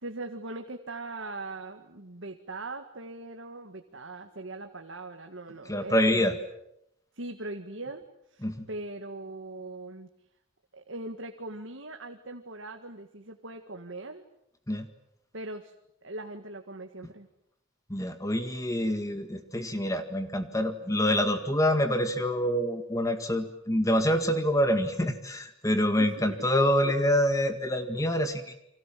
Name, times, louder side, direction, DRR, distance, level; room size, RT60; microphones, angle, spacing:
voice 1, 0.0-6.3 7.1-8.0 8.3-10.1 10.7-14.3 15.3-15.7 16.0-17.3 25.8-26.1, right 2 dB, 70° right, 5 dB, 1.8 m, -40 dB
voice 2, 5.7-6.4 8.4-8.7 14.7-14.9 17.9-28.5, equal, 15° left, 7 dB, 1.9 m, -26 dB
29.5 x 25.0 x 7.6 m, 0.81 s
head